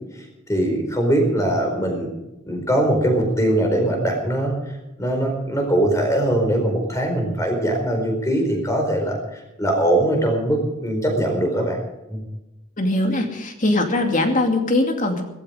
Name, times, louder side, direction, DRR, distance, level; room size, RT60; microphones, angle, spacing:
voice 1, 0.1-2.1 2.5-4.5 5.0-11.8 12.1-12.2, right 1 dB, 15° left, 2 dB, 4.5 m, -21 dB
voice 2, 12.8-15.2, left 2 dB, 40° left, 4 dB, 2.5 m, -21 dB
17.5 x 14.5 x 5.1 m, 0.98 s
head